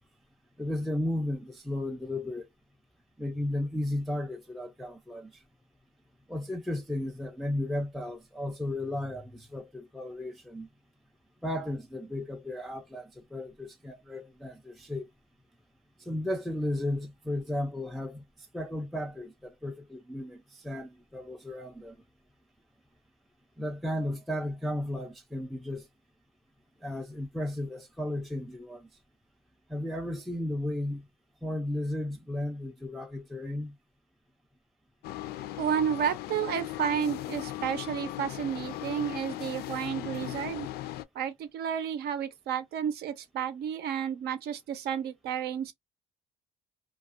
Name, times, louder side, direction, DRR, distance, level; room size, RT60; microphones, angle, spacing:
voice 1, 0.6-2.5 3.2-5.4 6.3-10.7 11.4-15.1 16.0-18.2 18.5-22.0 23.6-25.9 26.8-28.9 29.7-31.0 31.4-33.7, left 1 dB, ahead, 0.4 m, -34 dB
sound 1, 35.0-41.0, left 14 dB, 70° left, 0.4 m, -38 dB
voice 2, 35.6-40.7 41.1-45.7, right 8 dB, 70° right, 0.7 m, -31 dB
2.3 x 2.3 x 2.3 m
cardioid pair, 110°, 17 cm